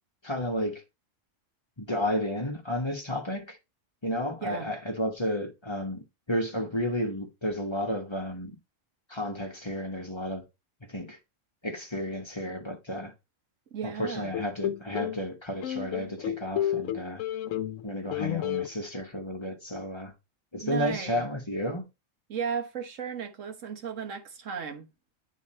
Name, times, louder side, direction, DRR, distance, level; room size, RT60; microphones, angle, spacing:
voice 1, 0.2-0.8 1.8-3.6 4.0-8.6 9.1-10.4 10.9-11.2 11.6-13.1 13.8-17.2 17.8-20.1 20.5-21.8, equal, 25° left, 1.2 m, -32 dB
voice 2, 13.7-14.3 20.6-21.3 22.3-24.9, right 7 dB, 90° right, 1.5 m, -35 dB
sound 1, 14.3-15.2 15.6-17.8 18.1-18.7, left 12 dB, 85° left, 1.0 m, -31 dB
9.5 x 3.8 x 4.3 m
omnidirectional pair, 1.3 m